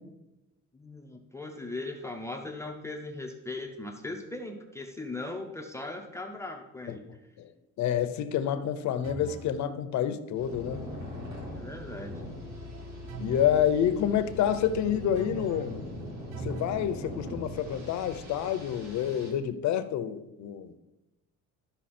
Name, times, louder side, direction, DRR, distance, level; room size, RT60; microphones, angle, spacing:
voice 1, 0.7-7.0 11.4-12.3, left 2 dB, 10° left, 3 dB, 0.6 m, -39 dB
voice 2, 7.8-10.8 13.2-15.8 16.4-20.7, left 9 dB, 60° left, 10 dB, 0.8 m, -28 dB
sound 1, 9.0-9.6 13.1-13.6 15.1-15.8 16.3-16.8, right 6 dB, 85° right, 0.7 m, -41 dB
sound 2, 10.3-19.3, left 1 dB, 55° right, 3.2 m, -41 dB
12.5 x 5.5 x 4.3 m, 0.96 s
cardioid pair, 175°, 32 cm